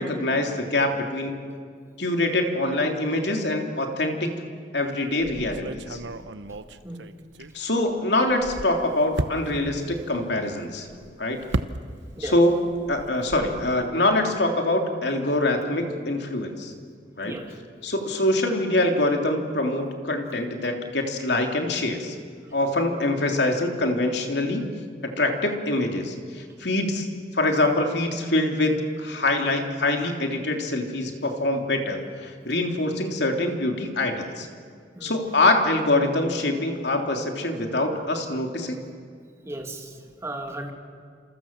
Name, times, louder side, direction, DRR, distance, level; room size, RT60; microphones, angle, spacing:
voice 1, 0.0-1.4 2.0-4.4 4.7-6.0 7.5-10.9 11.2-11.4 12.2-16.7 17.2-17.4 17.8-22.1 22.5-24.7 25.0-27.1 27.3-34.5 35.0-38.9, left 2 dB, 70° left, 3 dB, 3.3 m, -24 dB
sound 1, 5.2-7.9 8.2-12.3 12.6-13.9, right 2 dB, 90° right, 1.0 m, -35 dB
voice 2, 39.4-40.7, right 1 dB, 15° right, 3 dB, 2.7 m, -36 dB
28.0 x 27.5 x 7.5 m, 2.1 s
head